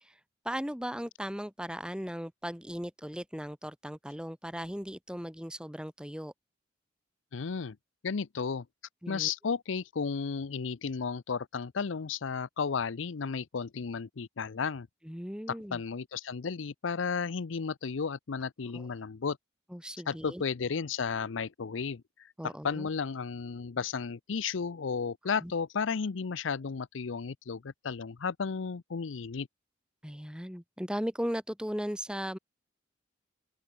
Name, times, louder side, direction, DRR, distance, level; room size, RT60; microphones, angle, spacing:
voice 1, 0.4-6.3 9.0-9.3 15.0-15.8 18.7-18.9 19.7-20.4 22.4-22.9 25.4-25.5 30.0-32.4, equal, 5° right, 2.7 m, -37 dB
voice 2, 7.3-7.8 8.0-8.7 9.1-14.9 15.5-19.4 20.1-29.5, left 5 dB, 85° left, 0.6 m, -33 dB
open air
head